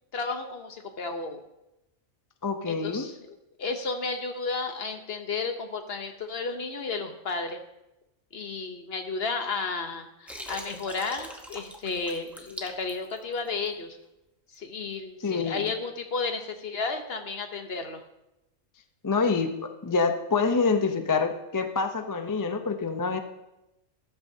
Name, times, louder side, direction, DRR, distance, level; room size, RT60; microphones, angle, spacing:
voice 1, 0.1-1.4 2.6-7.6 8.3-14.0 14.5-18.0, left 4 dB, 55° left, 6 dB, 1.1 m, -33 dB
voice 2, 2.4-3.1 15.2-15.6 19.0-23.2, left 4 dB, 20° left, 6 dB, 0.5 m, -26 dB
Water, 10.3-13.7, equal, ahead, 0.9 m, -42 dB
13.0 x 11.5 x 2.8 m, 0.91 s
omnidirectional pair, 1.4 m